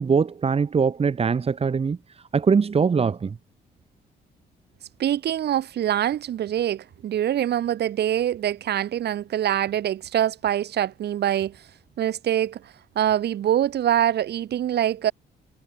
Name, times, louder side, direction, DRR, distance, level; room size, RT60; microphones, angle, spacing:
voice 1, 0.0-2.0 2.3-3.4, right 5 dB, 35° right, 3.9 m, -22 dB
voice 2, 5.0-11.6 12.0-15.1, right 11 dB, 70° right, 7.0 m, -24 dB
cardioid pair, 120°, 18 cm